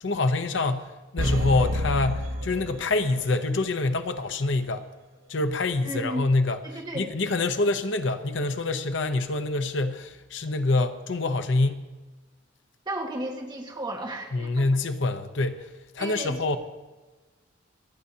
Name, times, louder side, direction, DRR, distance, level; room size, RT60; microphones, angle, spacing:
voice 1, 0.0-4.9 5.3-6.6 6.9-11.8 14.3-15.7 15.9-16.6, left 2 dB, 70° left, 9 dB, 0.7 m, -26 dB
sound 1, 1.2-3.4 3.7-3.8, equal, 85° right, 0.9 m, -29 dB
voice 2, 5.8-6.3 6.6-7.1 12.8-14.7 16.0-16.6, right 1 dB, 20° right, 1 dB, 1.6 m, -34 dB
27.5 x 9.7 x 2.8 m, 1.2 s
head